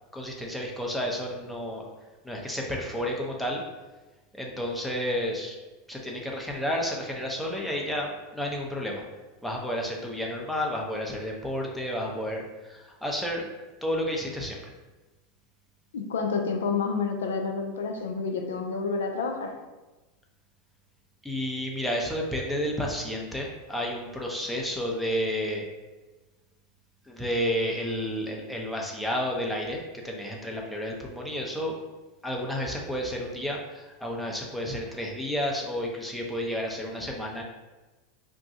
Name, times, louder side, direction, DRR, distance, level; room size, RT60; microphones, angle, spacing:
voice 1, 0.1-1.9 2.2-3.6 4.3-5.6 5.9-9.0 9.4-13.5 13.8-14.7 21.2-25.7 27.1-31.8 32.2-37.4, equal, ahead, -2 dB, 0.6 m, -31 dB
voice 2, 15.9-19.5, left 4 dB, 85° left, 4 dB, 0.4 m, -29 dB
2.6 x 2.2 x 3.8 m, 1.2 s
hypercardioid pair, 105°, 0 cm